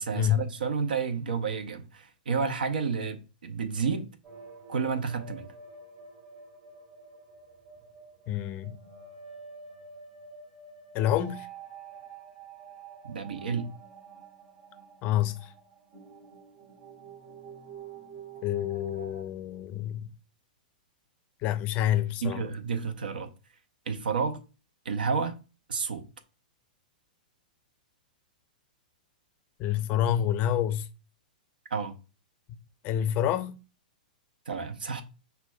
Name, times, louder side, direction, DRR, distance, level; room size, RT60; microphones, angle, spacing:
voice 1, 0.0-4.1 4.7-5.5 13.0-13.7 22.2-23.3 23.9-24.4 24.8-25.4 25.7-26.0 31.7-31.9 34.5-35.0, right 5 dB, 85° right, 0.6 m, -30 dB
sound 1, 4.2-19.2, right 5 dB, 35° right, 1.6 m, -48 dB
voice 2, 8.3-8.8 10.9-11.5 15.0-15.5 18.4-20.1 21.4-22.4 29.6-30.9 32.8-33.6, left 11 dB, 35° left, 0.4 m, -28 dB
5.9 x 2.2 x 2.2 m
hypercardioid pair, 125°, 5 cm